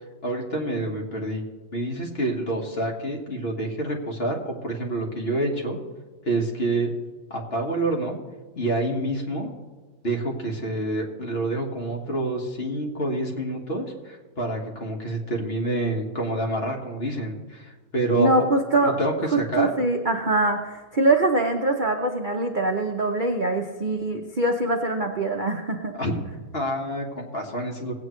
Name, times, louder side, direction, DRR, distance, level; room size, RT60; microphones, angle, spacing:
voice 1, 0.2-1.4 1.7-5.8 6.2-6.9 7.3-8.2 8.5-9.5 10.0-18.5 18.8-19.7 26.0-26.2 26.5-27.9, right 1 dB, 35° left, 0 dB, 1.6 m, -27 dB
voice 2, 18.1-18.9 19.3-25.9, right 2 dB, 65° right, 2 dB, 0.5 m, -23 dB
18.0 x 8.8 x 3.2 m, 1.3 s
omnidirectional pair, 2.1 m